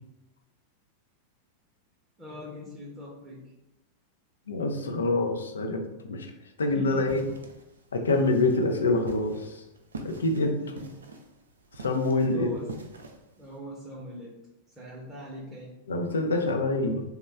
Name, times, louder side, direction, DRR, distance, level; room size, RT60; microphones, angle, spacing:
voice 1, 2.2-3.5 6.7-7.4 10.6-10.9 12.3-12.8 13.4-14.4 14.8-15.7, left 1 dB, 15° right, -4 dB, 0.7 m, -41 dB
voice 2, 4.5-6.3 6.6-7.2 7.9-9.6 10.0-10.7 11.8-12.5 15.9-17.0, left 2 dB, 70° left, 4 dB, 0.4 m, -26 dB
sound 1, 6.9-13.6, right 2 dB, 70° right, 0.4 m, -46 dB
3.0 x 2.1 x 3.4 m, 0.94 s
figure-of-eight pair, 90°, 0 cm